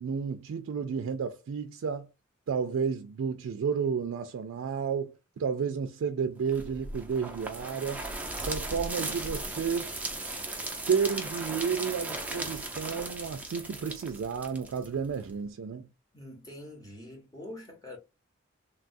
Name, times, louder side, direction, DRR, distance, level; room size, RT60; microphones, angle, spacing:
voice 1, 0.0-2.1 2.5-8.0 8.4-9.9 10.9-15.9, right 6 dB, 85° right, 0.3 m, -31 dB
sound 1, 6.5-15.3, right 2 dB, 10° right, 0.5 m, -37 dB
voice 2, 16.1-18.0, left 1 dB, 20° left, 0.9 m, -45 dB
3.3 x 2.3 x 2.5 m
head